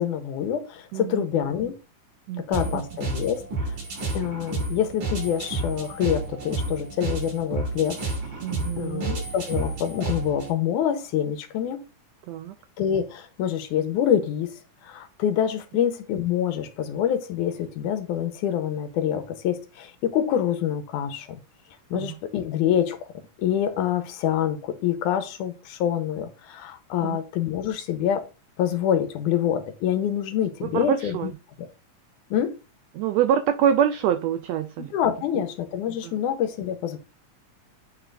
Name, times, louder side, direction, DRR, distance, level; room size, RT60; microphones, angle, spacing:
voice 1, 0.0-1.7 2.4-3.8 4.1-8.0 8.8-11.8 12.8-21.4 21.9-23.1 23.4-28.2 28.6-31.3 32.3-32.6 34.8-37.0, left 9 dB, 85° left, 2.3 m, -26 dB
voice 2, 0.9-1.3 2.3-2.4 2.7-2.8 8.4-9.2 12.3-12.5 21.9-22.2 27.0-27.2 30.7-31.3 32.9-34.9 36.0-36.1, right 9 dB, 90° right, 1.4 m, -25 dB
sound 1, 2.5-10.5, right 2 dB, 65° right, 4.1 m, -31 dB
8.9 x 3.4 x 3.8 m
omnidirectional pair, 3.5 m